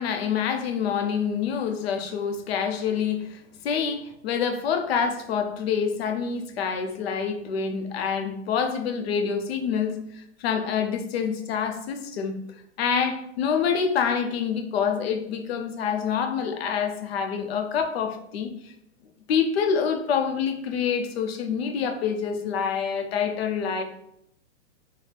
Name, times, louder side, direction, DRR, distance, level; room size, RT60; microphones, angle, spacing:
voice 1, 0.0-12.4 12.8-18.7 19.3-23.8, left 6 dB, 55° left, 6 dB, 0.6 m, -27 dB
3.4 x 2.1 x 4.0 m, 0.76 s
hypercardioid pair, 150°, 38 cm